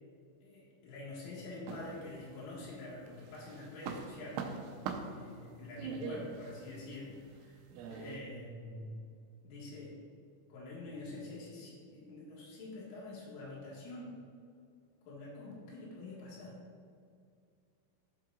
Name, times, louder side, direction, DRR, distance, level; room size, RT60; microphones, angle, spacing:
voice 1, 0.4-7.6 7.9-9.0 9.4-10.0 10.5-14.1 15.1-16.6, left 2 dB, 85° left, -5 dB, 4.3 m, -46 dB
sound 1, 1.7-2.7 3.1-8.2, right 5 dB, 90° right, 3.2 m, -43 dB
14.5 x 7.6 x 2.5 m, 2.3 s
omnidirectional pair, 5.5 m